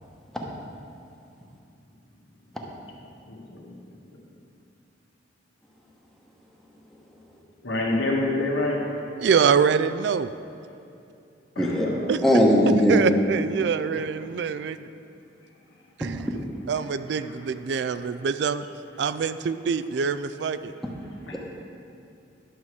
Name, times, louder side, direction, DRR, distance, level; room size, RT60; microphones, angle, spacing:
voice 1, 3.3-3.7 7.6-8.8 11.6-12.1 17.1-17.3 17.9-18.0 21.3-21.4, left 2 dB, 75° left, -2 dB, 1.7 m, -28 dB
voice 2, 9.2-10.3 11.6-11.7 12.1-12.2 12.9-14.9 16.0-16.3 16.7-18.7 19.0-20.7, right 6 dB, 65° right, 13 dB, 0.3 m, -25 dB
voice 3, 11.6-11.9 12.2-13.0, equal, ahead, -2 dB, 1.0 m, -18 dB
11.5 x 7.0 x 4.8 m, 2.6 s
head